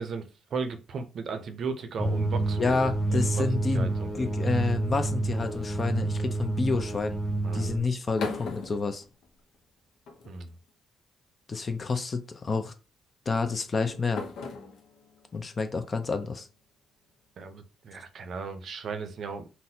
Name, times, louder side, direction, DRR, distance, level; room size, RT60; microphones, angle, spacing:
voice 1, 0.0-2.6 3.1-3.5 3.7-4.1 7.4-7.7 10.3-10.5 17.4-19.5, right 5 dB, 60° right, 0.5 m, -36 dB
sound 1, 2.0-7.8, right 2 dB, 10° right, 0.8 m, -29 dB
voice 2, 2.6-7.2 7.5-9.0 11.5-12.7 13.3-14.2 15.3-16.5, left 4 dB, 35° left, 0.5 m, -29 dB
sound 2, 7.8-9.7 10.1-10.7 11.8-12.1 13.3-16.5, left 4 dB, 75° left, 0.7 m, -41 dB
3.9 x 2.1 x 2.7 m
cardioid pair, 90°, 0 cm